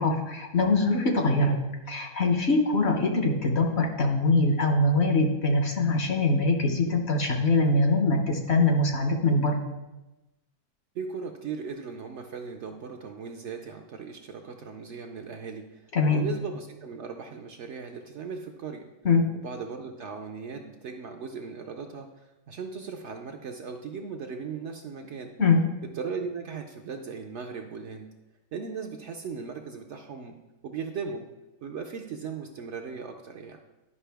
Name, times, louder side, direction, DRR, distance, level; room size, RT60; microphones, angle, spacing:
voice 1, 0.0-1.6 1.9-9.6 15.9-16.3 19.0-19.2 25.4-25.6, left 2 dB, 55° left, 3 dB, 0.9 m, -23 dB
voice 2, 10.9-18.9 19.3-25.3 25.9-28.1 28.5-30.4 30.6-31.3 31.6-33.6, right 5 dB, 65° right, 4 dB, 0.8 m, -38 dB
11.0 x 5.2 x 3.4 m, 1.0 s
omnidirectional pair, 1.6 m